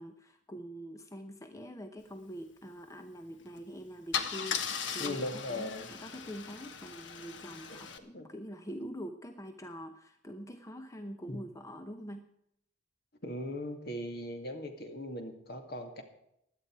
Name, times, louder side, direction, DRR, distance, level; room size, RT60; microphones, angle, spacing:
voice 1, 0.0-12.3, equal, 15° left, 7 dB, 0.8 m, -45 dB
Car / Engine starting / Idling, 3.4-3.6 4.1-8.0, left 7 dB, 75° left, 1.4 m, -38 dB
voice 2, 5.0-5.9 7.7-7.8 8.1-8.3 11.3-11.4 13.2-16.0, left 1 dB, 55° left, 5 dB, 2.4 m, -39 dB
16.5 x 11.0 x 4.7 m, 0.77 s
head